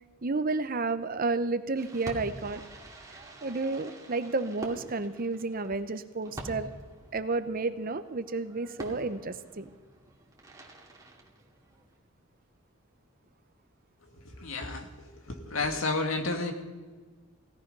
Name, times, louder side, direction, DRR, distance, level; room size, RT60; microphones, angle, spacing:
voice 1, 0.2-2.6 3.4-6.7 7.1-9.7, right 3 dB, 45° right, 11 dB, 0.8 m, -31 dB
Fireworks, 1.8-12.0, right 1 dB, 15° right, 2.3 m, -46 dB
voice 2, 14.4-14.9 15.3-16.5, left 3 dB, 85° left, 4 dB, 2.1 m, -30 dB
17.5 x 13.5 x 5.4 m, 1.4 s
head